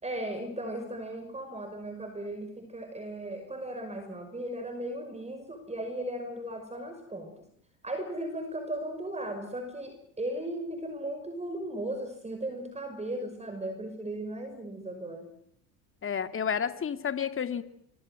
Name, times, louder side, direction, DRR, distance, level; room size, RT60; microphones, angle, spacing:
voice 1, 0.0-7.3 7.8-15.3, right 1 dB, 15° right, 6 dB, 5.8 m, -36 dB
voice 2, 16.0-17.6, left 7 dB, 30° left, 10 dB, 2.5 m, -30 dB
26.0 x 24.0 x 7.8 m, 0.68 s
hypercardioid pair, 75°, 41 cm